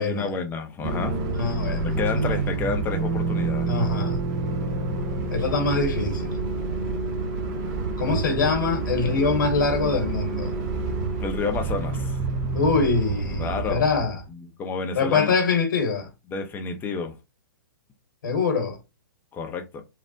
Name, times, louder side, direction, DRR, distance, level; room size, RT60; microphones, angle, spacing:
voice 1, 0.0-1.2 1.8-3.7 11.2-12.2 13.3-13.9 14.3-15.4 16.3-17.1 19.3-19.8, left 4 dB, 20° left, 0.6 m, -30 dB
sound 1, 0.8-14.3, right 3 dB, 35° right, 0.6 m, -28 dB
voice 2, 1.3-1.9 3.6-4.2 5.3-6.4 8.0-10.5 12.5-14.2 14.9-16.1 18.2-18.8, left 4 dB, 65° left, 1.1 m, -24 dB
3.2 x 2.0 x 2.7 m
hypercardioid pair, 120°, 11 cm